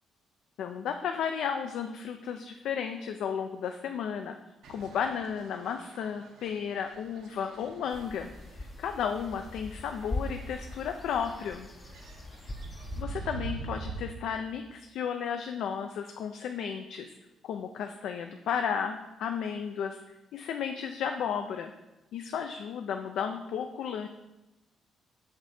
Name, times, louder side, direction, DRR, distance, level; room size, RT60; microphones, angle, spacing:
voice 1, 0.6-4.4 4.7-8.3 8.6-11.7 13.0-17.2 17.4-20.0 20.3-21.7 22.1-24.1, left 7 dB, 80° left, 6 dB, 0.4 m, -33 dB
sound 1, 4.6-14.1, right 3 dB, 90° right, 1.0 m, -45 dB
sound 2, 7.9-13.0, left 2 dB, 25° left, 0.5 m, -41 dB
6.5 x 5.9 x 4.2 m, 1.0 s
cardioid pair, 90°, 0 cm